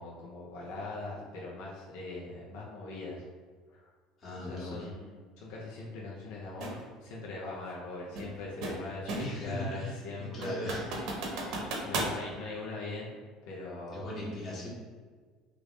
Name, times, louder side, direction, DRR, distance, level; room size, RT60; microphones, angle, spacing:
voice 1, 0.0-3.2 3.7-3.8 4.4-10.7 11.1-13.2 13.5-14.2, left 3 dB, 80° left, -5 dB, 0.7 m, -41 dB
voice 2, 4.2-4.8 9.2-10.8 11.4-11.6 13.9-14.7, left 1 dB, 40° left, -6 dB, 1.4 m, -39 dB
sound 1, 6.6-6.8 8.2-9.5 9.9-10.0 10.4-12.2, right 2 dB, 70° right, 0.8 m, -35 dB
3.3 x 2.5 x 3.2 m, 1.5 s
supercardioid pair, 105°, 0 cm